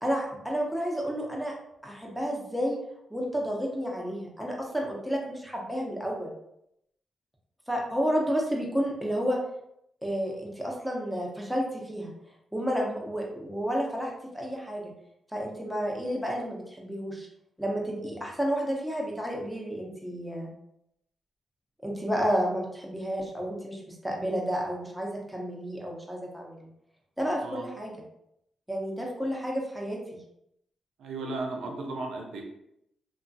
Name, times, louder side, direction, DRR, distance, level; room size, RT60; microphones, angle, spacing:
voice 1, 0.0-1.5 1.8-2.8 3.1-6.3 7.7-9.4 10.0-12.1 12.5-14.9 15.3-17.3 17.6-20.5 21.8-26.7 27.2-27.9 28.7-30.0, equal, 5° right, -2 dB, 0.9 m, -31 dB
voice 2, 31.0-32.4, right 2 dB, 80° right, 1 dB, 0.6 m, -35 dB
2.8 x 2.6 x 2.5 m, 0.78 s
supercardioid pair, 50°, 0 cm